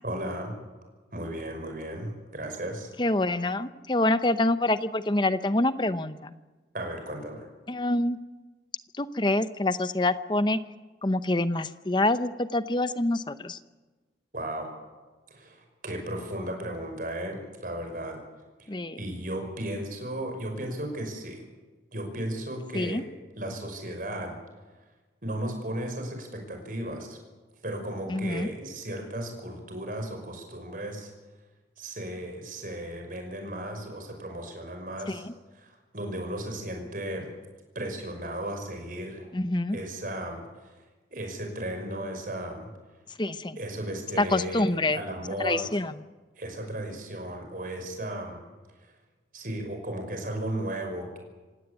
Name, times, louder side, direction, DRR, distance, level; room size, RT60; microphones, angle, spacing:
voice 1, 0.0-0.6 1.1-3.0 6.7-7.5 14.3-14.7 15.3-18.2 18.6-21.4 21.9-23.0 23.4-24.4 25.2-27.2 27.6-31.1 31.8-35.2 35.6-37.3 37.7-39.3 39.7-40.9 41.1-42.7 43.6-45.8 46.4-48.4 48.8-48.9 49.3-51.2, right 1 dB, 50° right, 4 dB, 5.7 m, -35 dB
voice 2, 3.0-6.3 7.7-8.2 9.0-10.6 11.0-13.6 18.7-19.0 22.7-23.0 28.1-28.5 35.1-35.3 39.3-39.8 43.2-43.6 44.2-45.0 45.4-45.9, left 2 dB, 25° left, 12 dB, 0.8 m, -26 dB
26.5 x 17.5 x 8.4 m, 1.3 s
head